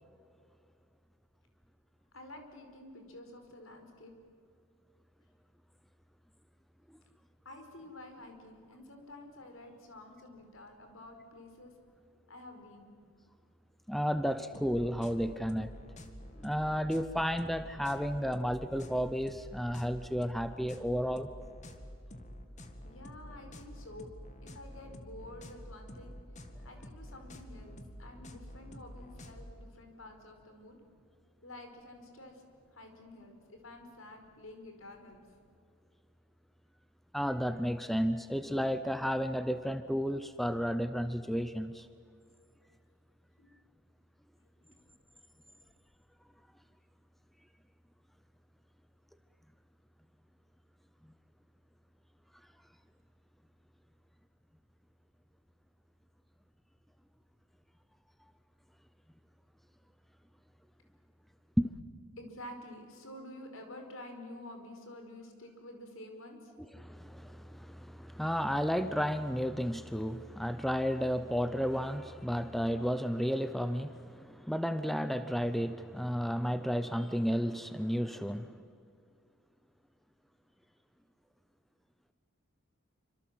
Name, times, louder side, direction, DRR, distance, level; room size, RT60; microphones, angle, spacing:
voice 1, 2.1-4.1 7.4-11.7 12.3-12.9 22.8-24.1 24.4-26.1 26.6-30.8 31.4-32.4 32.7-35.2 43.4-43.5 44.4-44.8 45.4-45.7 62.2-66.5, left 1 dB, 70° left, 5 dB, 4.9 m, -50 dB
voice 2, 13.9-15.7 16.4-21.3 37.1-41.9 61.6-61.7 66.7-78.6, equal, ahead, 11 dB, 0.7 m, -32 dB
sound 1, 14.5-29.5, equal, 35° left, 1.9 m, -49 dB
27.5 x 26.0 x 7.8 m, 2.3 s
head